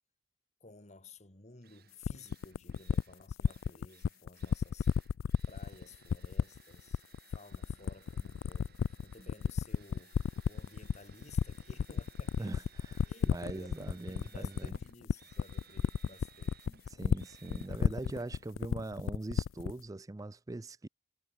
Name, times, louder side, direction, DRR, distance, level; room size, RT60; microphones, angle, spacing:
voice 1, 0.6-4.9 5.5-12.6 13.0-16.7, left 3 dB, 35° left, 2.1 m, -55 dB
Drill, 1.2-1.3 1.6-19.7, right 7 dB, 50° right, 2.4 m, -62 dB
sound 1, 2.0-19.8, left 6 dB, 65° left, 0.3 m, -31 dB
sound 2, 11.8-18.0, equal, 15° left, 7.2 m, -77 dB
voice 2, 12.4-14.7 16.7-20.9, right 2 dB, 15° right, 0.4 m, -42 dB
head